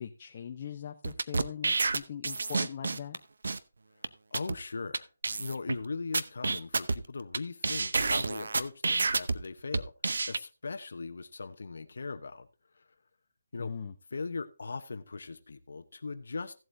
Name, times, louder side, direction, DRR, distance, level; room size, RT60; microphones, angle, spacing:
voice 1, 0.0-3.2 13.6-13.9, left 8 dB, 30° left, 0.6 m, -41 dB
sound 1, 1.0-3.2 3.4-3.6 4.0-4.1 4.3-4.6 4.9-5.0 5.2-5.8 6.1-7.4 7.6-9.4 9.7-10.4, right 3 dB, 70° right, 0.7 m, -29 dB
voice 2, 4.3-5.1 5.4-9.9 10.3-12.5 13.5-13.7 14.1-16.5, left 4 dB, 65° left, 0.8 m, -39 dB
16.0 x 7.8 x 2.6 m
hypercardioid pair, 170°, 0 cm